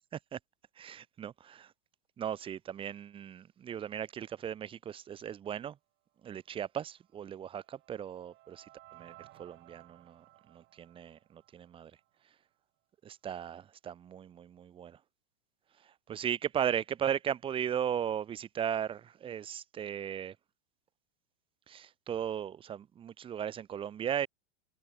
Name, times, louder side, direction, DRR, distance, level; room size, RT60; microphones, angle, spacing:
voice 1, 0.8-1.7 2.2-5.8 6.2-11.9 13.0-15.0 16.1-20.3 21.7-24.3, right 9 dB, 15° right, 0.8 m, -37 dB
sound 1, 7.0-12.2, right 18 dB, 30° right, 1.6 m, -59 dB
supercardioid pair, 145°, 35 cm